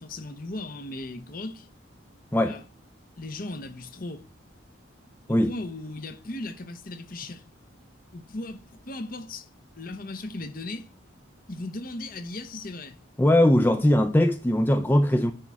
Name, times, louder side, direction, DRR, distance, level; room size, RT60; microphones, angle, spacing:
voice 1, 0.0-1.7 2.4-2.6 3.2-4.3 5.3-7.4 8.1-9.5 9.7-10.9 11.5-13.0, left 2 dB, 45° left, 0.8 m, -37 dB
voice 2, 13.2-15.3, left 1 dB, 10° left, 0.4 m, -20 dB
10.0 x 3.5 x 6.2 m
head